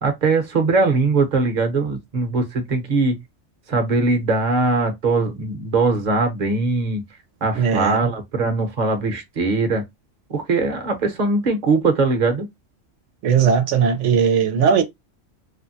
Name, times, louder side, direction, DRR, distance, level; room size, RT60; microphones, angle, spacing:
voice 1, 0.0-3.2 3.7-7.0 7.4-9.8 10.3-12.5, right 3 dB, 40° right, 0.9 m, -21 dB
voice 2, 7.6-8.0 13.2-14.8, right 6 dB, 85° right, 1.0 m, -18 dB
3.4 x 2.1 x 2.6 m
omnidirectional pair, 1.2 m